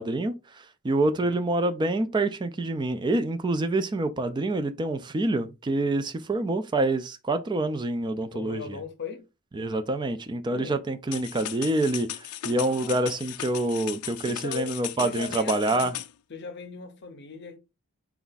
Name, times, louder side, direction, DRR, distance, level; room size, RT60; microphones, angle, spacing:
voice 1, 0.0-8.8 9.6-15.9, right 2 dB, 20° right, 0.3 m, -27 dB
voice 2, 8.3-9.3 10.5-10.8 12.5-13.2 14.2-16.0 16.3-17.6, left 5 dB, 50° left, 0.6 m, -39 dB
sound 1, 11.1-16.1, left 13 dB, 90° left, 0.4 m, -37 dB
4.3 x 2.4 x 3.9 m
head